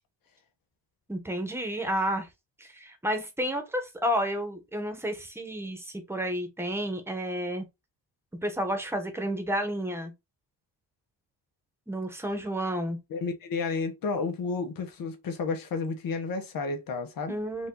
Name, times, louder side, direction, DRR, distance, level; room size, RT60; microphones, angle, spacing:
voice 1, 1.1-2.3 2.6-7.6 8.4-10.1 11.9-13.0 17.3-17.7, equal, 5° right, 1.2 m, -31 dB
voice 2, 13.1-17.4, left 4 dB, 50° left, 1.2 m, -31 dB
5.2 x 2.7 x 3.9 m
cardioid pair, 120°, 43 cm